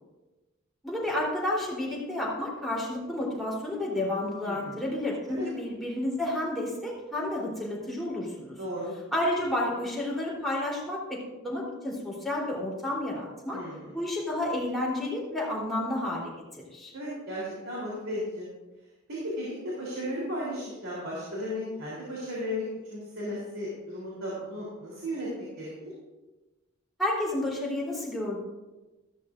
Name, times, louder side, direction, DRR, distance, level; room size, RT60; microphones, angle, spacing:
voice 1, 0.8-8.6 9.1-13.6 13.9-16.9 27.0-28.4, left 1 dB, ahead, -5 dB, 3.6 m, -31 dB
voice 2, 4.4-4.9 5.3-5.5 8.6-8.9 13.5-13.9 16.9-18.5 19.1-22.6 22.9-25.3 25.6-25.9, equal, 80° right, -7 dB, 3.7 m, -35 dB
14.5 x 13.0 x 2.6 m, 1.1 s
head